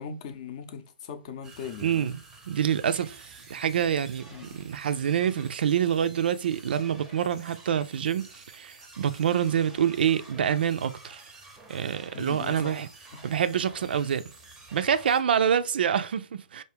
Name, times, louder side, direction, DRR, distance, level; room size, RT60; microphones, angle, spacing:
voice 1, 0.0-2.2 4.3-4.6 12.1-12.9 13.1-13.3, left 6 dB, 40° left, 0.6 m, -40 dB
sound 1, 1.4-15.2, right 2 dB, 5° right, 0.6 m, -50 dB
voice 2, 1.8-2.2 2.5-11.2 11.7-12.9 13.2-14.2 14.7-16.6, right 8 dB, 70° right, 0.4 m, -26 dB
4.6 x 2.5 x 3.3 m
hypercardioid pair, 155°, 5 cm